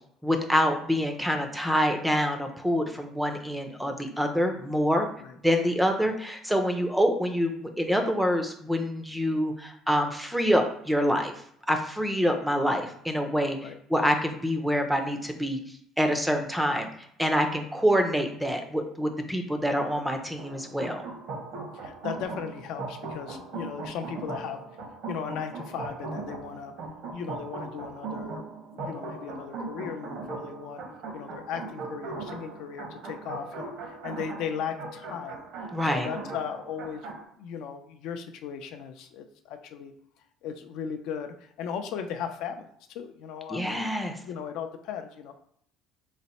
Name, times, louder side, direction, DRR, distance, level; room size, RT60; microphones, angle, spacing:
voice 1, 0.2-5.1 5.4-11.3 11.7-15.6 16.0-16.9 17.2-21.1 35.7-36.1 43.5-44.2, equal, 5° right, 5 dB, 0.4 m, -26 dB
sound 1, 20.4-37.2, right 3 dB, 65° right, 0.8 m, -39 dB
voice 2, 21.7-24.6 25.1-26.7 27.1-28.4 28.7-30.8 31.1-39.9 40.4-43.9 44.2-45.3, left 7 dB, 70° left, 6 dB, 0.4 m, -37 dB
4.1 x 2.0 x 4.1 m, 0.68 s
cardioid pair, 150°, 0 cm